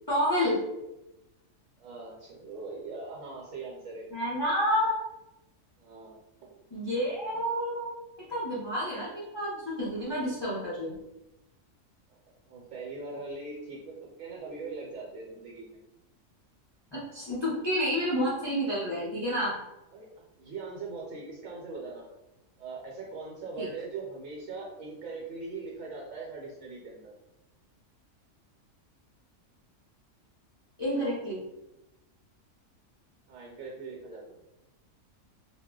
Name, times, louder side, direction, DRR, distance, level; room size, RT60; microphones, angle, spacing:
voice 1, 0.1-0.6 4.1-5.0 6.7-7.9 8.3-10.9 16.9-19.6 23.6-23.7 30.8-31.4, equal, 30° left, -9 dB, 0.5 m, -29 dB
voice 2, 1.8-4.1 5.8-6.6 12.1-12.2 12.5-15.8 19.9-22.0 22.6-27.1 33.3-34.4, right 3 dB, 75° right, -3 dB, 1.0 m, -41 dB
2.3 x 2.1 x 3.6 m, 0.94 s
omnidirectional pair, 1.4 m